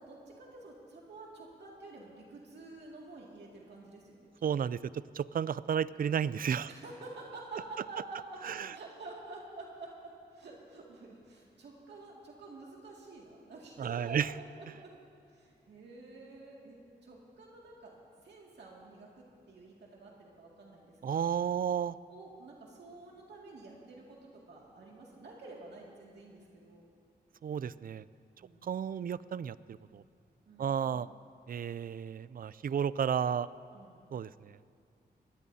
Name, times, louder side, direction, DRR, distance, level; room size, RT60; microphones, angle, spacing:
voice 1, 0.0-4.3 6.7-14.9 15.3-17.9 18.2-21.3 22.1-26.9 28.4-28.7 30.5-30.8 33.7-34.0, right 3 dB, 85° right, -3 dB, 2.2 m, -49 dB
voice 2, 4.4-4.8 5.1-6.7 8.4-8.7 13.8-14.3 21.0-22.0 27.4-28.0 28.6-30.0 30.6-31.1 31.5-33.5 34.1-34.6, right 8 dB, 55° right, 18 dB, 0.4 m, -32 dB
21.5 x 17.0 x 2.8 m, 2.5 s
cardioid pair, 70°, 17 cm